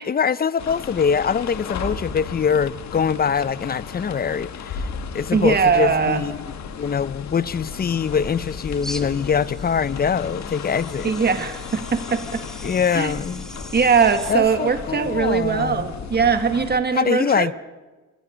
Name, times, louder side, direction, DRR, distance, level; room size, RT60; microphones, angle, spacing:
voice 1, 0.0-4.9 5.1-6.4 6.8-11.1 12.6-13.5 14.3-15.9 16.9-17.5, left 6 dB, 30° left, 0.6 m, -23 dB
sound 1, 0.6-16.8, left 7 dB, 65° left, 1.6 m, -35 dB
sound 2, 1.6-16.7, left 3 dB, 85° left, 7.7 m, -42 dB
voice 2, 5.3-6.2 11.0-12.4 12.9-13.1 13.7-17.5, right 5 dB, 35° right, 1.8 m, -20 dB
sound 3, 8.0-14.3, equal, ahead, 2.0 m, -40 dB
26.5 x 20.0 x 5.1 m
cardioid pair, 90°, 30 cm